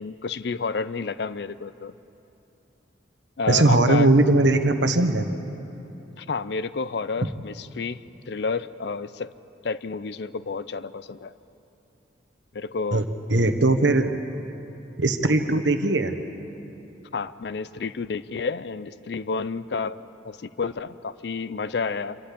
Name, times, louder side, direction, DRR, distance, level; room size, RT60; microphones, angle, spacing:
voice 1, 0.0-1.9 3.4-4.1 6.2-9.3 9.6-11.3 12.5-13.0 17.1-20.0 20.2-22.2, left 4 dB, 60° left, 15 dB, 0.5 m, -30 dB
voice 2, 3.5-5.3 12.9-13.0 13.3-14.1 15.0-16.1, right 2 dB, 70° right, 7 dB, 1.2 m, -19 dB
27.0 x 12.0 x 8.5 m, 2.9 s
head